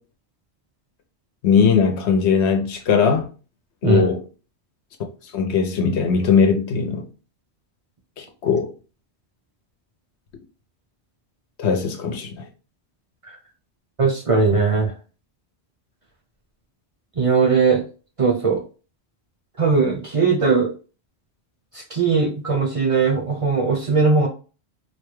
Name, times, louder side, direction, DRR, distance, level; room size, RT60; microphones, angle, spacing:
voice 1, 1.4-3.3 3.8-4.2 5.3-7.1 8.2-8.7 11.6-12.5, left 6 dB, 90° left, 1.0 m, -19 dB
voice 2, 14.0-14.9 17.2-17.8 18.2-18.6 19.6-20.7 21.7-24.3, right 4 dB, 40° right, 0.6 m, -19 dB
4.5 x 2.2 x 3.1 m
omnidirectional pair, 1.1 m